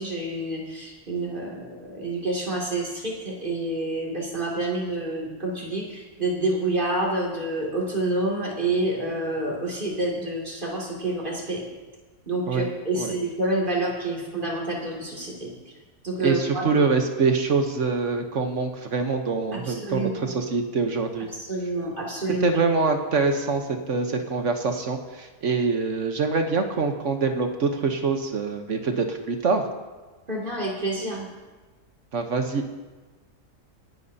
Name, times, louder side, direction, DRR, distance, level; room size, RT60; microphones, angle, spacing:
voice 1, 0.0-11.6 12.3-15.5 16.0-16.8 19.5-20.3 21.4-22.5 30.3-31.3, right 2 dB, 30° right, -3 dB, 2.8 m, -28 dB
voice 2, 16.2-21.3 22.4-29.7 32.1-32.6, right 4 dB, 55° right, 5 dB, 1.3 m, -25 dB
25.0 x 10.5 x 2.8 m, 1.2 s
omnidirectional pair, 1.7 m